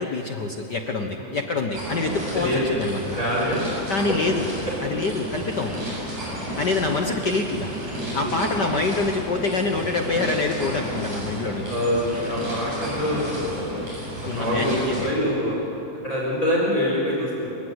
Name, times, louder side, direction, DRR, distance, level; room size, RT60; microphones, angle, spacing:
voice 1, 0.0-3.2 3.9-4.5 4.8-5.8 6.6-11.7 14.2-15.1, left 3 dB, 65° left, 3 dB, 1.0 m, -26 dB
sound 1, 1.7-15.0, equal, 80° right, 9.6 m, -32 dB
voice 2, 3.0-3.6 6.4-6.5 8.1-8.5 11.6-13.9 14.2-15.6 16.0-17.5, equal, 25° left, -4 dB, 5.1 m, -25 dB
28.5 x 19.0 x 8.0 m, 2.9 s
omnidirectional pair, 3.7 m